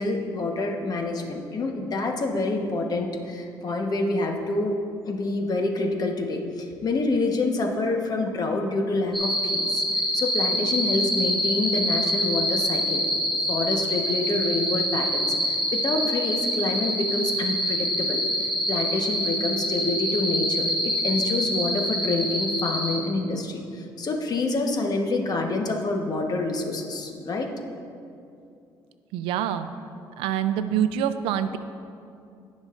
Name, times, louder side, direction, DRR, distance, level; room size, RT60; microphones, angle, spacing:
voice 1, 0.0-4.8 5.0-13.0 13.5-27.5, left 2 dB, 45° left, 3 dB, 1.2 m, -27 dB
sound 1, 9.1-23.0, equal, ahead, 1.9 m, -26 dB
voice 2, 29.1-29.7 30.2-31.6, right 9 dB, 90° right, 11 dB, 0.4 m, -25 dB
17.0 x 6.3 x 2.5 m, 2.5 s
cardioid pair, 85°, 9 cm